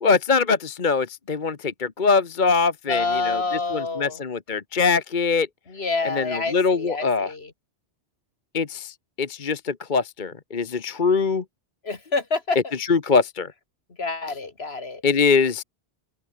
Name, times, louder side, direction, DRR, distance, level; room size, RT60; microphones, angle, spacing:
voice 1, 0.0-3.4 3.7-5.5 6.0-7.3 8.5-11.4 12.8-13.5 15.0-15.6, left 5 dB, 45° left, 1.3 m, -23 dB
voice 2, 2.9-4.2 5.7-7.5 11.8-12.7 14.0-15.0, left 3 dB, 65° left, 2.6 m, -27 dB
open air
omnidirectional pair, 1.2 m